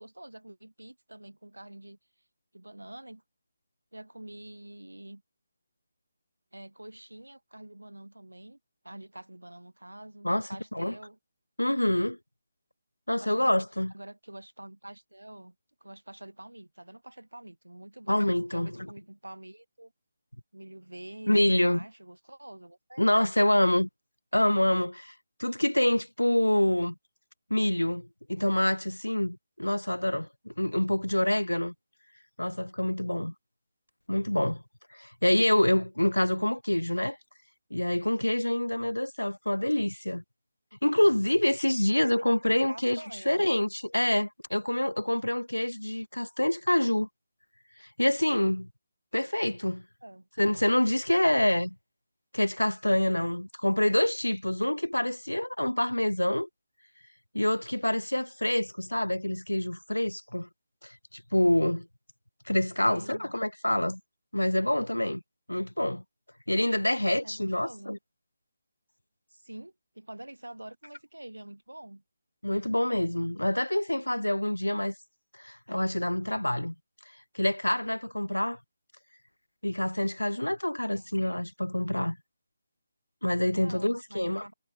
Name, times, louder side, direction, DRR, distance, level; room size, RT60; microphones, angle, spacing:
voice 1, 0.0-2.0 2.5-3.2 3.9-5.2 6.5-8.6 8.8-11.2 13.2-13.5 13.9-15.6 15.8-18.2 18.5-19.9 20.5-23.2 42.2-43.4 50.0-50.3 62.8-63.4 67.2-68.0 69.3-72.0 80.9-81.1 83.4-84.5, right 1 dB, 85° right, 3.5 m, -47 dB
voice 2, 10.2-10.9 11.6-12.2 13.1-13.9 18.1-18.9 21.3-21.9 23.0-23.9 24.3-25.1 25.4-26.9 27.5-31.7 32.4-33.3 34.1-34.6 34.9-37.2 37.7-40.2 40.8-43.0 43.3-47.1 47.8-48.7 49.1-49.8 50.4-51.8 52.3-56.5 57.3-60.5 60.8-61.9 62.5-64.0 64.3-65.2 65.5-66.0 66.5-68.0 72.4-74.9 75.4-76.7 77.3-78.6 79.6-82.2 83.2-84.5, left 1 dB, 85° left, 0.3 m, -26 dB
figure-of-eight pair, 150°, 0 cm